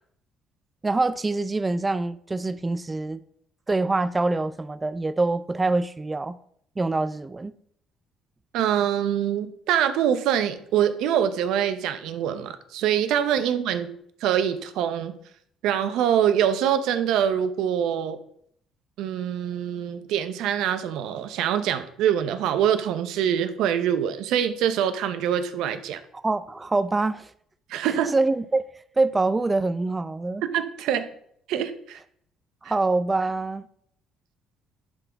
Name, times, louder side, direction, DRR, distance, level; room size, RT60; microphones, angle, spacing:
voice 1, 0.8-3.2 3.7-6.4 6.8-7.5 26.1-27.3 27.8-28.6 29.0-30.4 32.6-33.7, right 3 dB, 20° right, 0.3 m, -25 dB
voice 2, 8.5-13.9 14.2-15.2 15.6-18.2 19.0-26.0 27.7-28.1 30.4-31.1 31.5-32.0, right 9 dB, 80° right, 0.7 m, -24 dB
10.5 x 3.9 x 4.5 m
cardioid pair, 90°, 0 cm